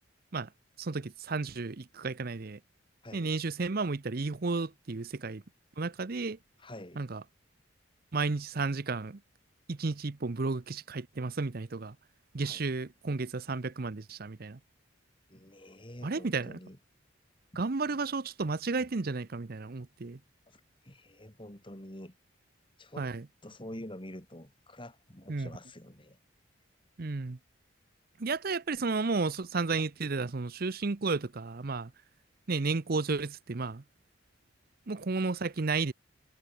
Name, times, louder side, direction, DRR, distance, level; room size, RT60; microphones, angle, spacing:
voice 1, 0.8-2.6 3.1-5.4 5.8-6.4 7.0-7.2 8.1-9.2 9.7-11.9 12.3-14.6 16.0-16.6 17.6-20.2 23.0-23.2 25.3-25.5 27.0-27.4 28.2-31.9 32.5-33.8 34.9-35.9, right 3 dB, 50° right, 0.7 m, -32 dB
voice 2, 6.6-7.0 12.4-12.7 15.3-16.8 20.5-22.2 22.8-23.1 23.4-26.2, left 1 dB, 25° left, 4.1 m, -47 dB
head